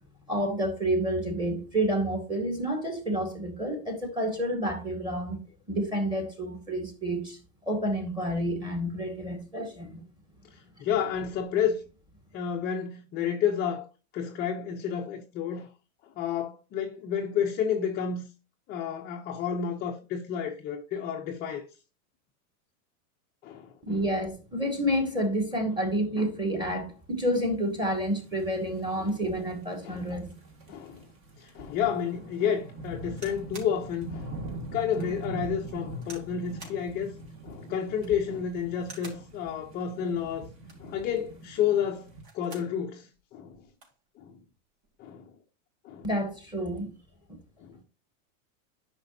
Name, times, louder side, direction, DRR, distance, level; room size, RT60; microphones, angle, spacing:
voice 1, 0.3-5.4 5.7-10.0 23.8-30.3 46.0-46.9, right 1 dB, 10° right, 2.1 m, -29 dB
voice 2, 10.5-11.8 12.3-13.9 14.1-15.7 16.2-18.3 18.7-21.7 23.4-23.7 29.0-29.1 29.8-30.1 30.7-31.0 31.4-34.3 34.7-37.1 37.4-40.5 40.8-43.6 44.2-44.4 45.0-45.3 45.8-46.1 47.6-47.8, left 8 dB, 20° left, 0.6 m, -30 dB
sound 1, 27.9-42.2, right 2 dB, 30° right, 1.6 m, -43 dB
sound 2, 33.2-33.8 34.3-34.4 34.9-35.1 36.0-36.3 36.6-36.8 37.9-38.2 38.8-39.3 40.5-40.9 42.0-42.7 43.2-43.3 43.5-44.0 44.8-45.1, right 3 dB, 60° right, 4.5 m, -48 dB
10.5 x 6.1 x 2.7 m
supercardioid pair, 155°, 43 cm